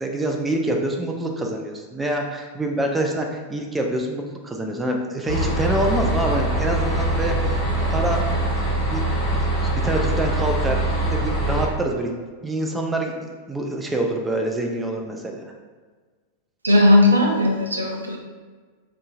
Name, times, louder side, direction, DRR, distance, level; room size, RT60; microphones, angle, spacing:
voice 1, 0.0-7.4 7.9-8.3 8.6-8.7 8.9-10.8 11.1-13.1 13.5-15.5, right 1 dB, 10° right, 2 dB, 0.4 m, -26 dB
sound 1, 5.3-11.6, right 1 dB, 15° left, 1.4 m, -23 dB
voice 2, 16.6-18.2, left 1 dB, 80° right, 1 dB, 0.4 m, -17 dB
3.6 x 2.7 x 2.5 m, 1.5 s
figure-of-eight pair, 90°, 0 cm